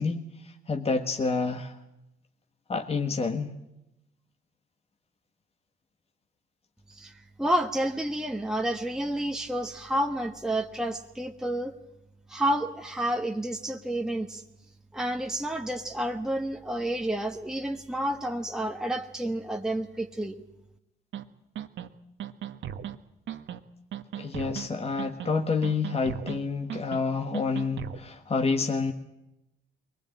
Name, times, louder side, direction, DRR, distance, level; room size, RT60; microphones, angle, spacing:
voice 1, 0.0-1.8 2.7-3.6 24.1-28.9, left 4 dB, 30° left, 5 dB, 1.6 m, -28 dB
voice 2, 7.4-11.7 12.3-14.4 14.9-20.4, right 1 dB, 5° right, 3 dB, 1.3 m, -30 dB
sound 1, 21.1-21.2 21.5-21.9 22.2-22.9 23.3-23.6 23.9-24.7 25.0-25.4 25.6-26.4 26.7-27.0 27.3-28.0, right 10 dB, 70° right, 1.3 m, -37 dB
22.5 x 19.0 x 8.7 m, 0.88 s
cardioid pair, 90°, 20 cm